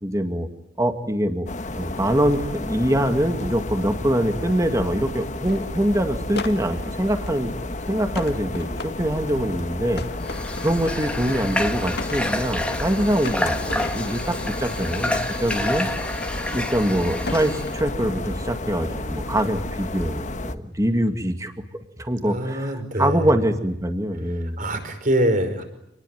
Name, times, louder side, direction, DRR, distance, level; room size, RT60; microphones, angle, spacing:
voice 1, 0.0-0.5 0.8-1.5 1.8-7.5 7.9-10.0 10.6-15.9 16.5-21.5 22.0-24.6, right 1 dB, 20° right, 6 dB, 2.1 m, -24 dB
sound 1, 1.5-20.5, left 2 dB, 40° left, 1.4 m, -31 dB
sound 2, 5.4-5.7 6.4-7.5 8.2-9.3 10.0-11.5 11.8-12.9 13.2-14.6 15.0-16.9 17.3-18.3 19.4-19.7 20.2-20.5, left 3 dB, 60° left, 2.2 m, -36 dB
Water / Water tap faucet, 10.2-17.8, left 1 dB, 5° left, 2.2 m, -29 dB
voice 2, 22.2-23.4 24.3-25.6, right 1 dB, 45° right, 7 dB, 5.4 m, -24 dB
28.0 x 20.5 x 9.4 m, 0.80 s
head